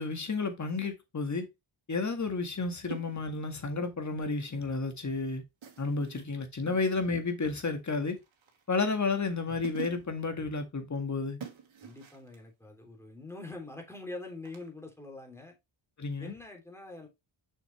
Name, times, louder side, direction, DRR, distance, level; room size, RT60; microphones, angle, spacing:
voice 1, 0.0-1.5 1.9-5.4 5.8-8.2 8.7-11.4 16.0-16.3, left 4 dB, 35° left, 1.9 m, -31 dB
sound 1, 2.9-3.5 5.6-6.4 8.1-8.7 9.3-9.4 9.6-10.2 11.4-12.4 14.4-14.6, right 7 dB, 65° right, 2.3 m, -45 dB
voice 2, 11.8-15.5 16.2-17.1, left 2 dB, 5° left, 3.1 m, -44 dB
6.5 x 6.4 x 3.3 m
cardioid pair, 95°, 49 cm